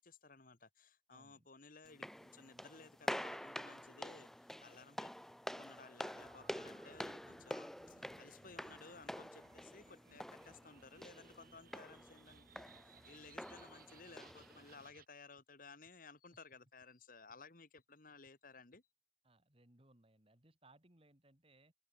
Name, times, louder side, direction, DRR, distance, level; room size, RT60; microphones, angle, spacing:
voice 1, 0.0-5.1 5.5-18.8, left 4 dB, 50° left, 1.7 m, -58 dB
voice 2, 1.1-1.5 8.4-8.6 19.2-21.7, right 2 dB, 30° right, 2.8 m, -67 dB
sound 1, 1.9-14.9, equal, ahead, 0.4 m, -48 dB
sound 2, 3.9-4.0 4.3-4.4 4.8-4.9 5.3-5.4 5.8-5.9 6.3-6.4 6.7-6.8 7.2-7.3 7.7-7.8 8.2-8.3 8.7-8.8 9.1-9.2 9.6-9.7 10.1-10.2 10.6-10.7 11.1-11.2 11.5-11.6 12.0-12.1 12.5-12.6 13.0-13.1 13.5-13.6 13.9-14.0 14.4-14.5 14.9-15.0 15.4-15.5 15.9-16.0 16.3-16.4 16.8-16.9 17.3-17.4 17.8-17.9 18.3-18.4 18.7-18.8, left 1 dB, 70° left, 6.3 m, -74 dB
sound 3, 6.1-15.1, right 4 dB, 50° right, 4.0 m, -65 dB
open air
head